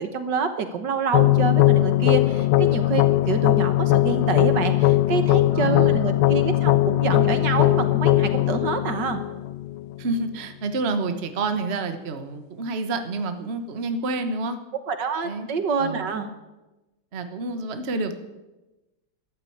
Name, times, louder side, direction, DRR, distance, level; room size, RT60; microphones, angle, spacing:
voice 1, 0.0-9.2 14.9-16.3, right 5 dB, 60° right, 9 dB, 1.7 m, -27 dB
sound 1, 1.1-10.1, left 16 dB, 85° left, 1.6 m, -20 dB
voice 2, 5.5-6.1 10.0-14.6 15.2-15.5 15.8-16.1 17.1-18.2, right 3 dB, 35° right, 8 dB, 1.3 m, -28 dB
13.5 x 12.0 x 8.6 m, 1.1 s
omnidirectional pair, 2.3 m